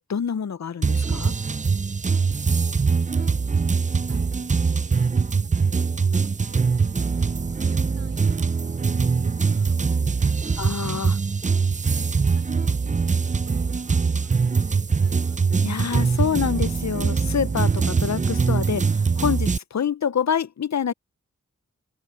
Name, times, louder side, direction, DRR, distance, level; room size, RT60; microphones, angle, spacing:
voice 1, 0.0-1.3 10.6-11.2 15.6-18.9 19.2-20.9, left 7 dB, 65° left, 0.6 m, -26 dB
sound 1, 0.8-19.6, right 5 dB, 25° right, 0.4 m, -22 dB
voice 2, 2.2-3.6 4.1-7.1 7.3-10.6 12.1-13.0 13.2-15.5, right 4 dB, 55° right, 4.3 m, -53 dB
wide cardioid pair, 85°, 31 cm